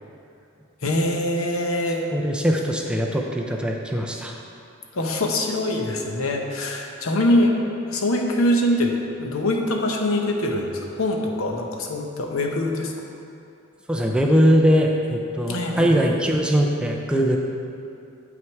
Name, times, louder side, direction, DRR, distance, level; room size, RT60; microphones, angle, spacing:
voice 1, 0.8-2.0 4.9-7.6 7.9-12.9 15.5-16.0, left 1 dB, 80° left, 2 dB, 0.9 m, -23 dB
voice 2, 2.1-4.4 13.9-17.4, equal, 5° right, 0 dB, 0.5 m, -21 dB
7.7 x 6.0 x 4.6 m, 2.6 s
head